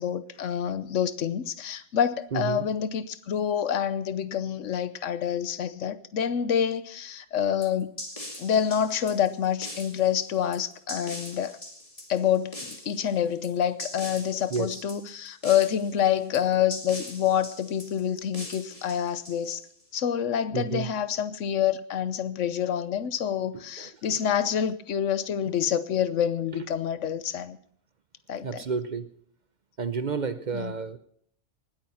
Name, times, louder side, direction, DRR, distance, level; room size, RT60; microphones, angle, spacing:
voice 1, 0.0-7.9 8.4-11.6 12.1-19.6 19.9-27.6 28.3-28.6 30.5-30.7, left 9 dB, 85° left, 1.2 m, -27 dB
voice 2, 2.3-2.7 14.5-14.8 20.5-20.9 23.5-24.2 28.4-29.1 29.8-31.0, right 5 dB, 45° right, 0.7 m, -31 dB
sound 1, 7.6-19.8, left 1 dB, 30° left, 2.5 m, -42 dB
19.5 x 9.0 x 5.6 m
omnidirectional pair, 1.2 m